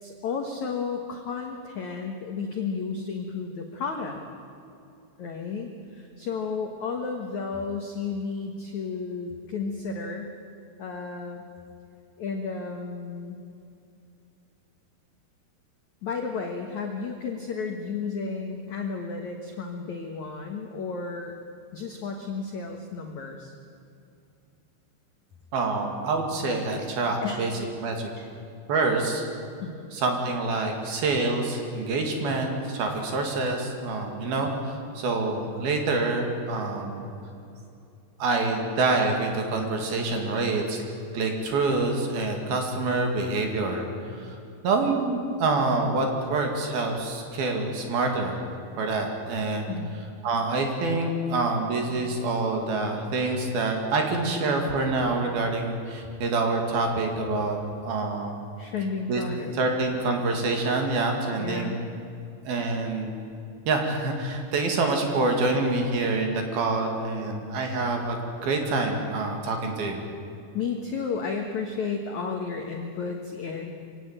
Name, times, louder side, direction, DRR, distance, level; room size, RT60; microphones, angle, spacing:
voice 1, 0.0-4.2 5.2-10.3 10.8-11.4 12.2-13.4 16.0-21.3 21.7-23.5 27.2-27.5 28.2-28.3 29.6-29.9 49.7-49.9 58.6-59.6 61.4-61.8 64.6-64.7 70.5-73.7, left 5 dB, 80° left, 3 dB, 1.6 m, -32 dB
voice 2, 25.5-27.5 27.8-28.1 28.7-29.2 29.9-37.1 38.2-40.8 41.1-44.4 44.6-48.4 48.8-49.7 50.2-57.6 57.8-58.4 59.1-59.2 59.6-61.7 62.5-63.2 63.7-70.0, right 3 dB, 55° right, 3 dB, 3.8 m, -26 dB
24.5 x 17.0 x 9.0 m, 2.6 s
omnidirectional pair, 5.7 m